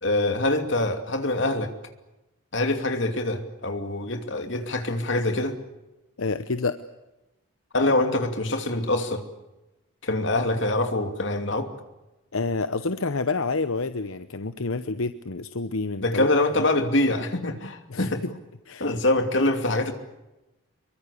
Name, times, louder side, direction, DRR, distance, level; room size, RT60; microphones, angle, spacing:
voice 1, 0.0-1.7 2.5-5.6 7.7-9.2 10.0-11.7 16.0-18.2 18.8-19.9, left 2 dB, 60° left, 6 dB, 2.7 m, -24 dB
voice 2, 6.2-6.8 12.3-16.3 17.9-18.3 18.7-18.9, left 3 dB, 80° left, 11 dB, 0.9 m, -28 dB
25.5 x 23.0 x 8.5 m, 1.0 s
head